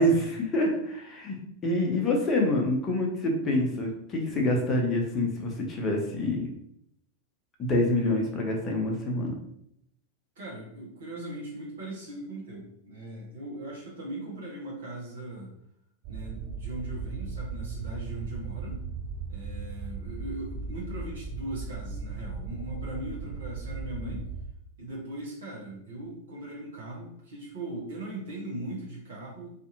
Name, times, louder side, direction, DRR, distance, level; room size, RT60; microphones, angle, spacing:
voice 1, 0.0-1.4 1.6-6.5 7.6-9.3, left 1 dB, 25° left, 0 dB, 0.7 m, -26 dB
voice 2, 10.4-15.5 16.1-18.8 19.3-24.3 24.8-29.6, right 1 dB, 60° right, -4 dB, 0.9 m, -39 dB
sound 1, 16.0-24.5, right 4 dB, 40° right, 0.5 m, -37 dB
2.7 x 2.5 x 2.6 m, 0.72 s
figure-of-eight pair, 90°, 0 cm